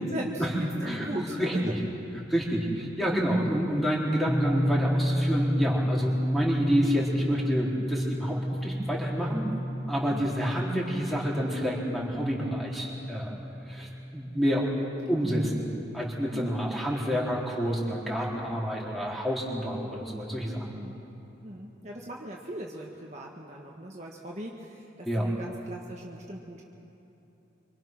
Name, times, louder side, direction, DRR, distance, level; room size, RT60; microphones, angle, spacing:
voice 1, 0.1-0.7 1.1-1.7 10.1-10.3 15.1-15.4 16.3-16.5 20.7-21.0 21.4-26.6, right 1 dB, 35° right, -2 dB, 1.8 m, -39 dB
voice 2, 1.4-1.7 2.3-9.5 9.9-13.4 13.7-14.7 15.1-20.7 25.1-25.3, equal, ahead, -5 dB, 3.9 m, -29 dB
sound 1, 4.3-17.2, equal, 20° left, 1.1 m, -32 dB
26.0 x 25.5 x 6.2 m, 2.9 s
head